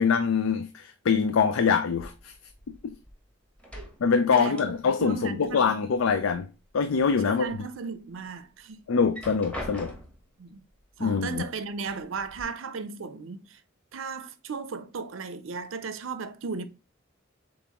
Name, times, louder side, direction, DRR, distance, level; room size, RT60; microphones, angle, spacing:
voice 1, 0.0-2.3 4.0-6.5 6.7-7.4 8.9-9.9 11.0-11.4, left 6 dB, 80° left, 0.4 m, -24 dB
sound 1, 2.0-3.2 3.5-5.1 5.4-6.4 6.8-7.6 8.1-8.2 8.9-10.3 11.3-11.4 11.8-12.4, left 1 dB, 5° left, 1.0 m, -42 dB
voice 2, 4.3-4.7 5.0-5.7 7.2-8.8 10.4-10.6 11.0-13.6 13.9-16.6, right 4 dB, 75° right, 0.6 m, -36 dB
7.0 x 2.6 x 2.9 m
head